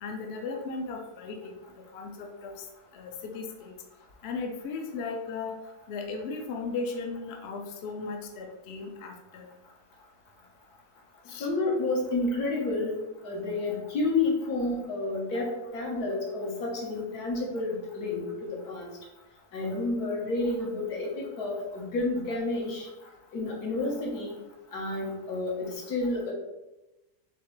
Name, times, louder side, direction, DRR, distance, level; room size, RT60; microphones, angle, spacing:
voice 1, 0.0-2.5 2.9-3.8 4.2-5.6 5.9-9.5 11.3-11.5, left 4 dB, 65° left, 2 dB, 0.7 m, -36 dB
voice 2, 11.4-12.9 13.2-18.2 18.5-18.9 19.5-22.8 23.3-24.3 24.7-26.3, left 2 dB, 80° left, -2 dB, 1.5 m, -30 dB
4.3 x 3.2 x 3.0 m, 1.0 s
omnidirectional pair, 1.6 m